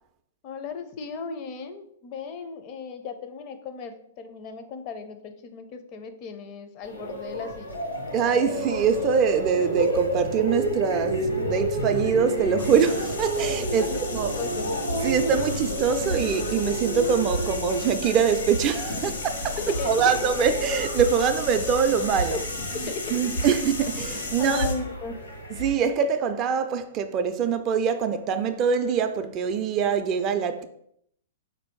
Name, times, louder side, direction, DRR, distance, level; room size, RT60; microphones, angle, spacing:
voice 1, 0.4-7.8 13.8-14.7 19.6-20.1 22.3-22.4 22.9-23.3 24.4-25.2, left 5 dB, 40° left, 0.5 m, -36 dB
sound 1, 6.8-25.7, right 1 dB, 90° left, 1.4 m, -31 dB
voice 2, 8.1-14.3 15.0-19.6 19.8-22.4 23.1-24.7 25.6-30.7, right 6 dB, 35° right, 0.3 m, -24 dB
sound 2, 12.6-24.7, left 3 dB, 75° left, 0.9 m, -35 dB
4.0 x 2.6 x 4.4 m
hypercardioid pair, 120°, 0 cm